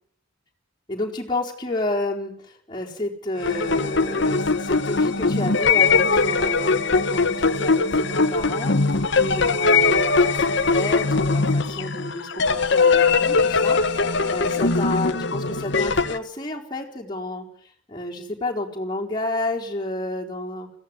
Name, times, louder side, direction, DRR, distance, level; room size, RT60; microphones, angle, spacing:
voice 1, 0.9-17.5 17.9-20.7, left 2 dB, 20° left, -1 dB, 4.2 m, -30 dB
sound 1, 3.4-16.2, left 4 dB, 60° left, 1.4 m, -21 dB
21.5 x 16.5 x 9.9 m, 0.64 s
head